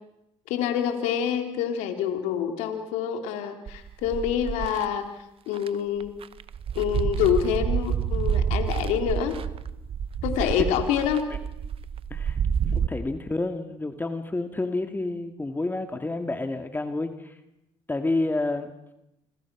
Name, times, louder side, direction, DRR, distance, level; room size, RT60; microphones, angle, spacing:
voice 1, 0.5-5.1 5.5-6.1 6.7-9.4 10.2-11.2 12.7-12.8, left 9 dB, 85° left, 6 dB, 3.2 m, -26 dB
sound 1, 3.7-4.8 5.5-5.7 6.0-12.9, right 7 dB, 55° right, 1.2 m, -28 dB
voice 2, 12.8-17.4 17.9-18.7, left 2 dB, 15° left, 7 dB, 2.1 m, -29 dB
27.5 x 26.0 x 6.1 m, 0.86 s
supercardioid pair, 75°, 11 cm